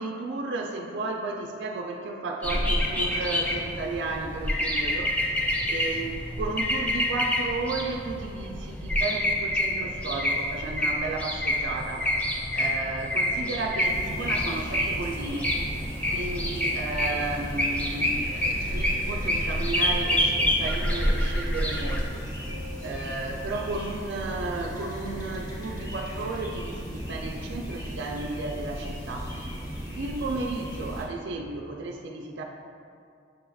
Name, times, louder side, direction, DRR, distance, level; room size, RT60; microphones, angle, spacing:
voice 1, 0.0-5.2 5.7-15.5 16.1-22.5 22.8-29.3 30.0-32.4, right 3 dB, 70° right, 2 dB, 0.3 m, -33 dB
sound 1, 2.4-22.1, left 1 dB, 5° left, 0.3 m, -27 dB
sound 2, 13.8-31.0, equal, 20° left, 0.9 m, -36 dB
6.6 x 2.3 x 3.3 m, 2.4 s
head